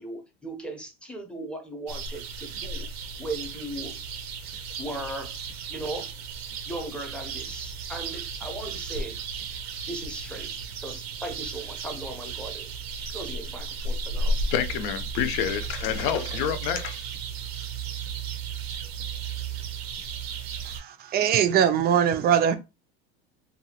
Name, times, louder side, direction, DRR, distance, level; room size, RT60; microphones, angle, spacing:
voice 1, 0.0-2.9 3.2-4.0 4.8-5.4 5.7-6.1 6.7-9.2 9.9-10.5 10.8-12.7 13.1-14.3, right 1 dB, 5° left, 0.7 m, -37 dB
sound 1, 1.9-20.8, right 4 dB, 90° right, 0.7 m, -34 dB
voice 2, 14.5-17.0, left 9 dB, 60° left, 0.6 m, -28 dB
voice 3, 20.7-22.6, right 9 dB, 30° right, 0.4 m, -22 dB
2.7 x 2.3 x 2.9 m
supercardioid pair, 115°, 31 cm